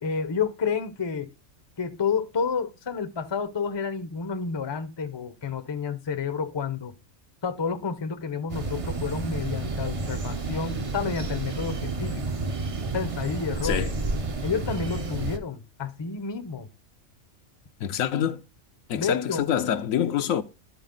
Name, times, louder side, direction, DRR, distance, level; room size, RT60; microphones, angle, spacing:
voice 1, 0.0-1.3 1.8-6.9 7.4-12.3 12.9-13.8 14.4-16.7 19.0-19.5, left 5 dB, 30° left, 0.6 m, -30 dB
sound 1, 8.5-15.4, right 3 dB, 35° right, 0.6 m, -30 dB
voice 2, 13.6-13.9 17.8-18.4 18.9-20.4, left 9 dB, 80° left, 1.1 m, -26 dB
11.5 x 4.2 x 3.8 m
omnidirectional pair, 1.4 m